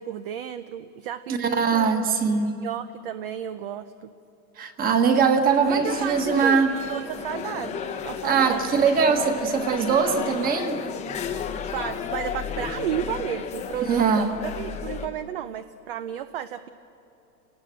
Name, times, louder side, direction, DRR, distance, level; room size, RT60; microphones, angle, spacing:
voice 1, 0.0-2.1 2.4-4.1 5.7-8.7 11.7-16.7, right 10 dB, 35° right, 12 dB, 0.5 m, -33 dB
voice 2, 1.3-2.5 4.6-6.7 8.2-10.8 13.9-14.3, right 5 dB, 20° right, 6 dB, 1.4 m, -21 dB
sound 1, 5.6-15.1, left 7 dB, 15° left, 0.8 m, -33 dB
28.0 x 19.0 x 7.7 m, 2.9 s
hypercardioid pair, 150°, 49 cm